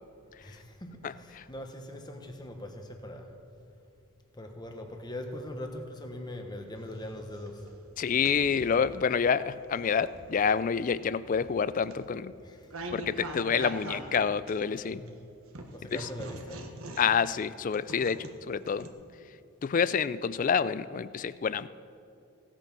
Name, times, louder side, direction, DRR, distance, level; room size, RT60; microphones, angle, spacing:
voice 1, 0.3-3.3 4.3-7.7 12.4-12.7 14.8-15.2 15.7-16.7, left 1 dB, 20° left, 4 dB, 1.2 m, -41 dB
voice 2, 1.0-1.5 8.0-12.3 12.9-15.0 15.9-16.1 17.0-18.9 19.6-21.7, left 6 dB, 35° left, 16 dB, 0.3 m, -28 dB
sound 1, 6.8-8.9 9.5-15.1 15.5-18.9, right 2 dB, 75° right, 1.4 m, -43 dB
16.5 x 8.8 x 6.1 m, 2.6 s
head